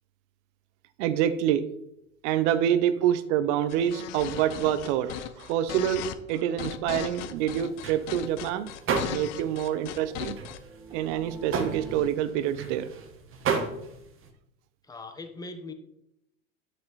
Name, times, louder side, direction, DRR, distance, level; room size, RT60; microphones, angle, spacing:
voice 1, 1.0-1.7 2.2-8.7 9.1-10.4 10.9-12.9, right 10 dB, 55° right, 13 dB, 0.8 m, -27 dB
sound 1, 3.7-10.6, left 12 dB, 60° left, 0.9 m, -37 dB
sound 2, 5.7-5.8 6.1-6.2 6.5-6.6 6.9-7.0 7.3-8.6 8.9-12.1, right 3 dB, 10° right, 1.5 m, -48 dB
sound 3, 7.4-9.6 9.9-14.3, right 5 dB, 30° right, 1.5 m, -32 dB
voice 2, 14.8-15.7, left 2 dB, 10° left, 7 dB, 1.1 m, -40 dB
10.5 x 6.7 x 4.1 m, 0.80 s
hypercardioid pair, 95°, 42 cm